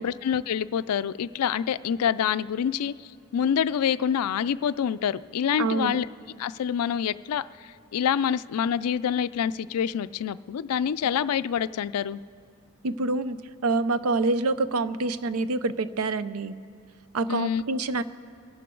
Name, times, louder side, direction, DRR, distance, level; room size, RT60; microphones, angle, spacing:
voice 1, 0.0-2.9 3.3-6.1 6.4-12.2 17.3-17.6, left 8 dB, 85° left, 16 dB, 0.4 m, -26 dB
voice 2, 5.6-6.0 12.8-13.4 13.6-16.6 17.1-18.0, right 3 dB, 70° right, 13 dB, 0.5 m, -26 dB
27.5 x 11.5 x 3.8 m, 2.3 s
head